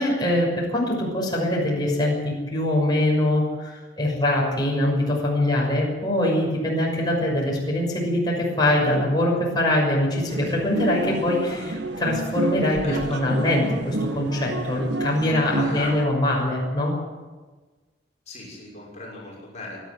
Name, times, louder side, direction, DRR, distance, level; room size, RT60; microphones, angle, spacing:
voice 1, 0.0-17.0, left 1 dB, 25° left, -3 dB, 6.4 m, -23 dB
sound 1, 10.3-16.0, right 2 dB, 80° right, 1.8 m, -30 dB
voice 2, 12.8-13.2 15.6-16.0 18.3-19.8, left 2 dB, 40° left, -4 dB, 6.2 m, -37 dB
23.5 x 12.0 x 9.8 m, 1.3 s
head